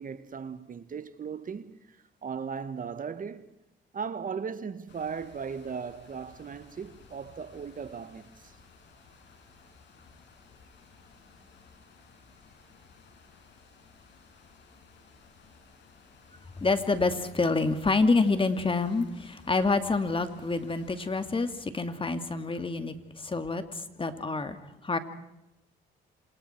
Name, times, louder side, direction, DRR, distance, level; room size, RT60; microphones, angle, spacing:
voice 1, 0.0-3.5 3.9-8.6, right 6 dB, 45° right, 1.4 m, -37 dB
sound 1, 4.9-21.5, left 4 dB, 60° left, 6.7 m, -56 dB
voice 2, 16.6-25.0, left 3 dB, 25° left, 2.5 m, -27 dB
28.0 x 27.0 x 4.6 m
cardioid pair, 90°, 20 cm